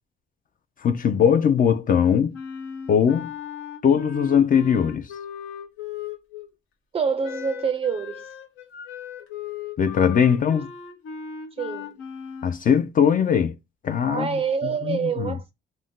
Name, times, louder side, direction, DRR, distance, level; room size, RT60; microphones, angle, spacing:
voice 1, 0.8-2.4 2.9-3.3 3.8-5.1 9.8-10.7 12.4-13.6 13.8-15.4, left 7 dB, 45° left, 0.4 m, -20 dB
Wind instrument woodwind instrument, 2.3-6.5 7.2-12.6, left 7 dB, 85° left, 0.8 m, -37 dB
voice 2, 6.9-8.2 11.6-11.9 14.1-15.5, right 6 dB, 30° right, 0.4 m, -26 dB
2.6 x 2.1 x 3.5 m
cardioid pair, 90°, 20 cm